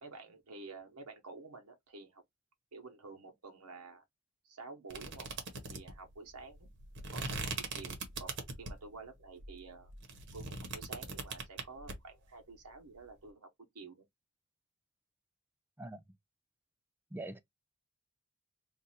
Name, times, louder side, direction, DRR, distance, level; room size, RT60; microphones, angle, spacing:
voice 1, 0.0-2.2 2.7-4.0 4.4-5.3 5.7-6.7 7.1-9.9 10.3-13.5 13.7-14.0, right 3 dB, 90° right, 1.0 m, -50 dB
sound 1, 4.9-8.9 9.4-11.9, right 3 dB, 55° right, 1.0 m, -41 dB
voice 2, 15.8-16.0 17.1-17.4, right 1 dB, 10° right, 0.3 m, -43 dB
2.6 x 2.4 x 4.2 m
head